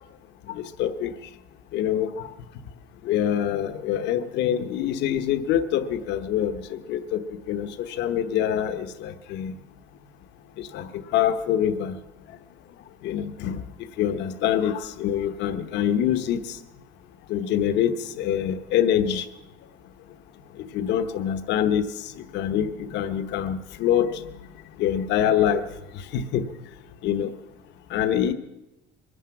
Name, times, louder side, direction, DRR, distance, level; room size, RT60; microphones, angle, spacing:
voice 1, 0.5-1.1 1.7-2.3 3.0-7.2 7.5-7.7 8.0-9.5 10.7-11.9 13.0-13.6 14.0-16.4 17.3-19.2 20.7-21.8 22.3-24.1 24.8-25.6 26.1-26.4 27.0-27.3 27.9-28.3, left 10 dB, 60° left, 9 dB, 1.0 m, -25 dB
22.5 x 10.0 x 5.9 m, 0.95 s
cardioid pair, 170°, 20 cm